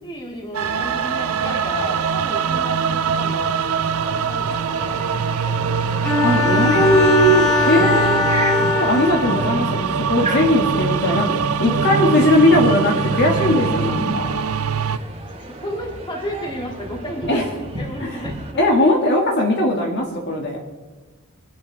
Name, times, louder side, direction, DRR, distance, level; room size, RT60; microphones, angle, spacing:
voice 1, 0.0-3.5 4.1-7.2 7.7-8.3 11.7-12.2 15.0-15.1 15.4-18.6, equal, 20° left, -1 dB, 2.9 m, -33 dB
sound 1, 0.5-15.0, right 6 dB, 70° right, 0.5 m, -23 dB
sound 2, 0.6-18.5, right 1 dB, 30° right, 1.9 m, -31 dB
Bowed string instrument, 6.0-9.7, left 4 dB, 5° left, 2.8 m, -21 dB
voice 2, 6.2-14.5 17.3-17.4 18.0-18.2 18.6-20.6, left 1 dB, 55° left, -1 dB, 2.4 m, -19 dB
25.0 x 11.0 x 3.7 m, 1.2 s
head